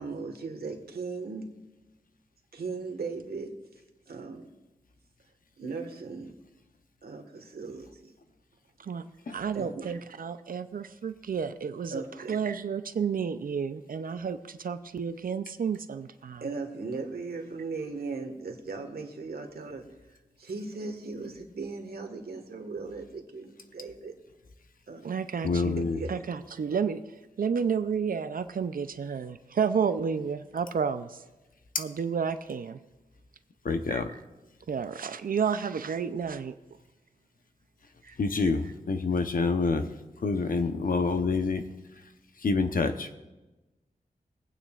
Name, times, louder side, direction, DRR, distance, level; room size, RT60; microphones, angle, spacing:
voice 1, 0.0-1.5 2.5-3.6 4.1-4.5 5.6-6.3 7.0-8.1 9.5-9.8 11.9-12.4 16.4-24.1 24.9-25.0 25.8-26.2, right 4 dB, 80° right, 4 dB, 1.5 m, -38 dB
voice 2, 9.3-12.0 12.3-16.4 25.0-25.8 26.1-27.0 27.4-31.2 31.8-32.8 33.9-34.2 34.7-36.5 38.0-38.2 38.4-38.5, right 6 dB, 65° right, 10 dB, 0.5 m, -31 dB
voice 3, 25.4-26.0 33.6-34.1 38.2-39.9 40.2-41.6 42.4-43.1, left 4 dB, 65° left, 8 dB, 0.8 m, -27 dB
23.5 x 9.0 x 2.4 m, 1.1 s
wide cardioid pair, 110°, 16 cm